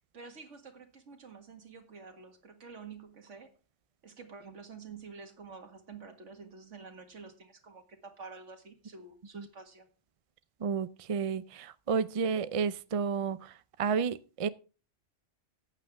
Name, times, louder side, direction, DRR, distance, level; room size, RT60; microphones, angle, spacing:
voice 1, 0.1-3.5 4.0-9.9, right 5 dB, 75° right, 2.1 m, -49 dB
voice 2, 10.6-14.5, right 6 dB, 45° right, 0.5 m, -31 dB
14.0 x 9.2 x 3.5 m
omnidirectional pair, 1.3 m